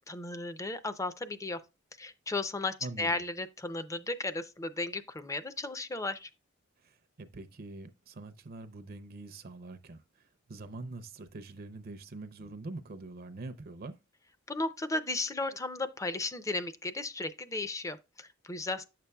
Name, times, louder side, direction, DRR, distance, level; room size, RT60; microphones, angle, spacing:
voice 1, 0.1-1.6 2.0-6.3 14.5-18.8, left 2 dB, 15° left, 0.5 m, -35 dB
voice 2, 2.8-3.2 6.8-14.0, right 2 dB, 50° right, 0.6 m, -44 dB
8.9 x 6.7 x 2.3 m
head